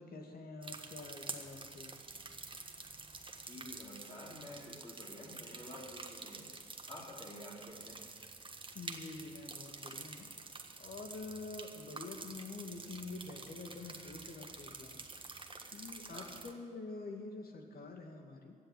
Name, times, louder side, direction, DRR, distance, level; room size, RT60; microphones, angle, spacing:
voice 1, 0.0-2.0 8.7-10.3 10.8-15.3 15.7-18.6, left 3 dB, 50° left, 3 dB, 2.3 m, -47 dB
sound 1, 0.6-16.5, right 3 dB, 25° right, 1.5 m, -48 dB
voice 2, 3.4-6.4 6.9-8.0 16.1-16.3, left 1 dB, 25° left, -6 dB, 4.0 m, -50 dB
16.0 x 7.8 x 9.9 m, 2.1 s
hypercardioid pair, 50°, 20 cm